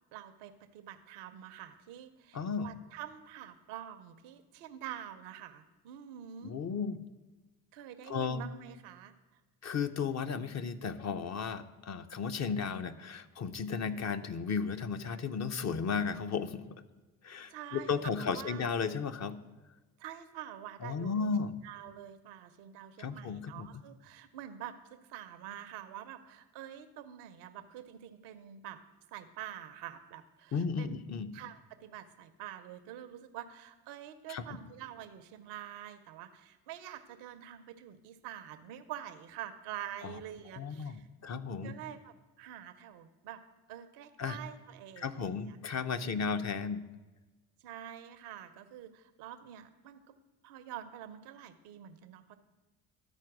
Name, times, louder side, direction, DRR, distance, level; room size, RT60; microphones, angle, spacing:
voice 1, 0.1-6.6 7.7-9.1 17.3-18.6 20.0-21.3 21.6-28.8 29.1-31.0 31.3-41.1 41.6-43.4 43.7-45.6 46.0-46.5 47.6-50.1 50.4-52.4, right 10 dB, 75° right, 9 dB, 0.7 m, -46 dB
voice 2, 2.3-2.7 6.4-7.0 8.1-8.4 9.6-16.8 17.2-19.4 20.8-21.5 23.0-23.7 30.5-31.3 34.3-34.4 40.0-40.1 40.6-41.7 44.2-44.4 45.0-46.8, left 5 dB, 40° left, 10 dB, 0.7 m, -34 dB
12.5 x 4.4 x 6.0 m, 1.2 s
hypercardioid pair, 50°, 42 cm